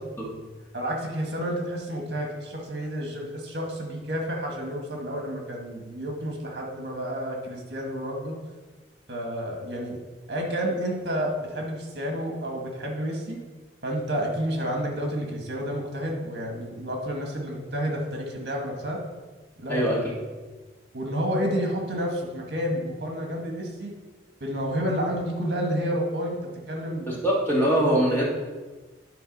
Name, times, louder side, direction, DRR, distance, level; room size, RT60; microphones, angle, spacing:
voice 1, 0.7-8.4 9.1-10.0 10.3-13.4 13.8-19.0 19.6-19.8 20.9-23.9 24.4-26.4 26.7-27.1, equal, 60° right, 0 dB, 1.6 m, -30 dB
voice 2, 19.7-20.1 27.1-28.2, equal, 15° left, -5 dB, 1.7 m, -23 dB
10.5 x 3.9 x 5.3 m, 1.3 s
head